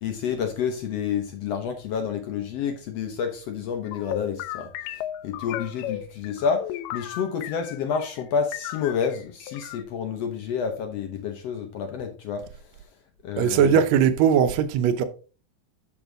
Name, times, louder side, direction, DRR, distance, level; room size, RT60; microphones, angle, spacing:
voice 1, 0.0-12.6 13.2-13.8, left 7 dB, 70° left, 1.5 m, -29 dB
sound 1, 3.8-8.2 8.5-9.8, left 12 dB, 85° left, 2.2 m, -35 dB
voice 2, 13.4-15.0, right 8 dB, 75° right, 1.7 m, -19 dB
7.2 x 6.8 x 3.8 m
omnidirectional pair, 3.8 m